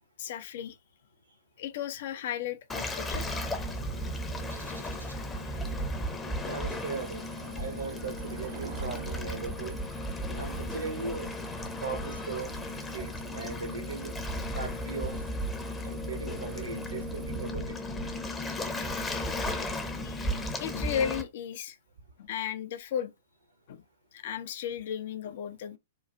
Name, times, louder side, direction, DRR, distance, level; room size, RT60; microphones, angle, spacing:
voice 1, 0.2-0.8 1.6-3.3 20.0-20.2 20.6-21.8 22.2-23.1 23.7-23.8 24.1-25.8, left 9 dB, 50° left, 0.5 m, -34 dB
Waves surf, 2.7-21.2, left 1 dB, 15° left, 0.7 m, -35 dB
Bird, 3.0-9.0, right 1 dB, 85° right, 0.7 m, -51 dB
voice 2, 6.4-7.3 7.5-9.8 10.3-11.3 11.8-12.6 12.9-14.1 14.5-15.2 15.8-17.8, right 4 dB, 70° right, 1.0 m, -38 dB
sound 1, 6.6-17.5, right 8 dB, 50° right, 0.6 m, -48 dB
3.9 x 2.3 x 3.3 m
figure-of-eight pair, 105°, 0 cm